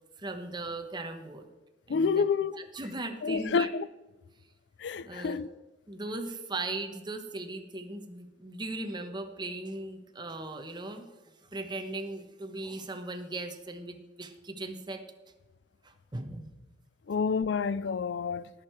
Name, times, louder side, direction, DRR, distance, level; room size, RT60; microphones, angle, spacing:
voice 1, 0.2-1.5 1.9-2.2 2.5-3.7 5.0-5.4 5.9-11.1 11.5-15.0 15.8-16.6, right 2 dB, 25° right, 1.1 m, -38 dB
voice 2, 1.9-2.5 3.2-3.9 4.8-5.5 17.1-18.5, left 5 dB, 85° left, 0.4 m, -28 dB
19.0 x 6.6 x 4.5 m
head